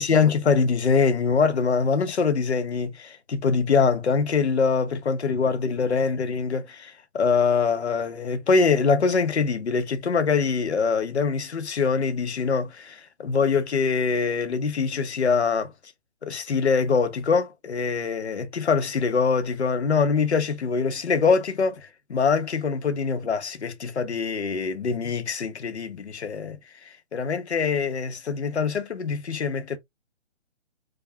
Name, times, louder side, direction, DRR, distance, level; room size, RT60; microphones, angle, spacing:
voice 1, 0.0-15.7 16.2-29.8, left 5 dB, 65° left, 0.8 m, -24 dB
4.8 x 2.2 x 2.7 m
figure-of-eight pair, 140°, 35 cm